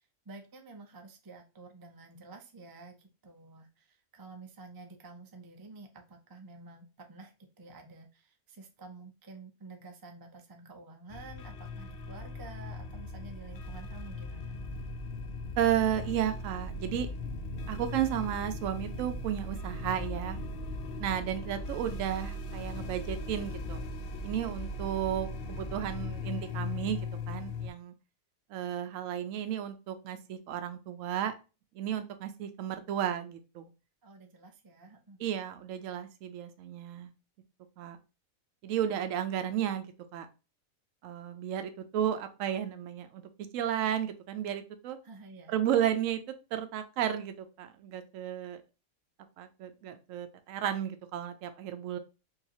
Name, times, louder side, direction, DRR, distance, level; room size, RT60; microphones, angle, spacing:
voice 1, 0.3-3.0 3.2-14.5 21.7-21.9 34.0-35.2 45.0-45.6, right 3 dB, 35° right, 4 dB, 0.3 m, -50 dB
sound 1, 11.1-27.7, left 2 dB, 60° left, 0.6 m, -38 dB
voice 2, 15.6-17.1 17.7-20.4 21.0-23.8 24.2-27.9 28.5-31.3 31.7-33.7 35.2-37.1 37.8-38.0 38.6-39.9 40.1-40.3 41.0-43.2 43.5-45.0 45.5-48.6 49.4-52.0, right 10 dB, 70° right, 9 dB, 1.0 m, -33 dB
4.7 x 2.8 x 2.8 m, 0.30 s
omnidirectional pair, 1.4 m